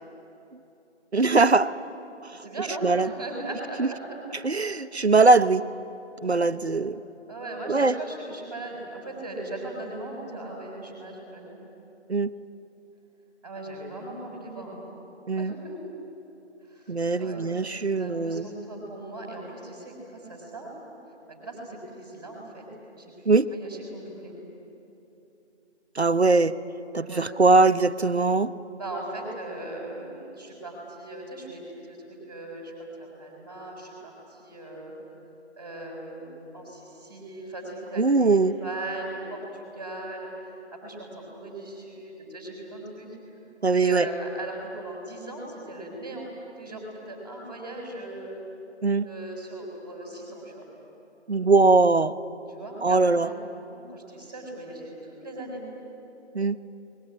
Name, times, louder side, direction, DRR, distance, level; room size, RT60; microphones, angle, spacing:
voice 1, 1.1-1.7 2.8-3.1 3.8-3.9 4.4-5.6 6.2-7.0 7.7-8.0 12.1-12.3 15.3-15.5 16.9-18.5 23.3-23.5 25.9-26.5 26.9-28.5 38.0-38.5 43.6-44.1 48.8-49.1 51.3-52.1 52.8-53.3 56.3-56.6, right 3 dB, 65° right, 13 dB, 0.9 m, -21 dB
voice 2, 2.3-4.4 6.7-6.9 7.3-11.6 13.4-14.9 15.4-15.8 16.6-17.5 17.9-20.7 21.3-22.7 22.9-24.4 27.0-27.3 28.7-34.9 35.6-43.1 43.7-46.3 46.6-48.3 49.0-50.6 52.5-53.3 53.7-55.6, right 1 dB, 20° right, -1 dB, 6.0 m, -38 dB
28.5 x 21.5 x 8.9 m, 3.0 s
figure-of-eight pair, 175°, 35 cm